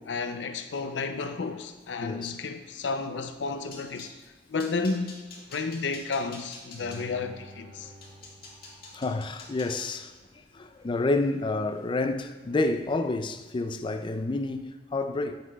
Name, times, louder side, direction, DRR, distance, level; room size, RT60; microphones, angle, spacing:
voice 1, 0.0-4.1 4.5-5.2 5.5-7.9, left 4 dB, 85° left, 0.5 m, -32 dB
voice 2, 2.0-2.4 8.9-10.1 10.5-15.4, left 2 dB, 30° left, 0.4 m, -29 dB
sound 1, 3.3-4.1 4.6-7.0 7.6-7.7 8.0-12.2 12.6-13.0 13.2-13.5 13.9-14.0, left 3 dB, 60° left, 1.7 m, -49 dB
Bowed string instrument, 6.8-9.9 10.3-10.4, left 1 dB, 70° right, 2.0 m, -49 dB
9.1 x 5.7 x 2.3 m
head